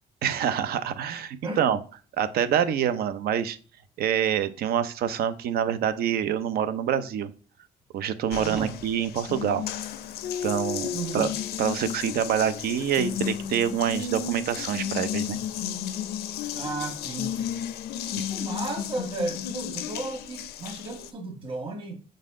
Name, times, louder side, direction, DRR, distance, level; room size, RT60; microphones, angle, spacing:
voice 1, 0.2-1.8 2.2-3.6 4.0-7.3 7.9-9.6 10.4-10.9 11.1-11.3 11.6-15.4, right 9 dB, 65° right, 0.6 m, -26 dB
Water tap faucet, 8.3-21.1, left 9 dB, 70° left, 0.5 m, -33 dB
voice 2, 8.4-8.8 10.9-11.3 15.5-15.6 16.5-17.6 18.3-22.0, right 3 dB, 30° right, 1.6 m, -34 dB
6.4 x 4.1 x 3.6 m
cardioid pair, 110°, 17 cm